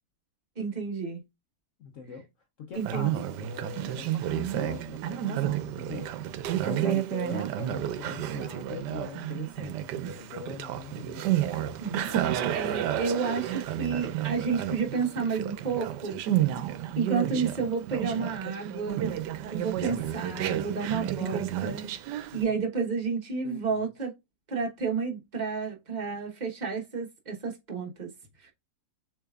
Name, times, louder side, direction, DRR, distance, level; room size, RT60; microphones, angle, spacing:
voice 1, 0.6-1.2 2.7-3.1 11.8-16.2 17.0-19.1 19.5-21.9 22.3-24.1 24.5-28.1 28.4-28.5, right 5 dB, 30° right, 1.1 m, -31 dB
voice 2, 1.8-2.3 2.6-6.1 6.6-11.3 12.0-12.8 22.3-22.4 23.4-23.9, left 6 dB, 55° left, 1.0 m, -42 dB
Conversation, 2.7-22.4, right 12 dB, 90° right, 1.2 m, -31 dB
6.7 x 3.3 x 2.3 m
omnidirectional pair, 1.8 m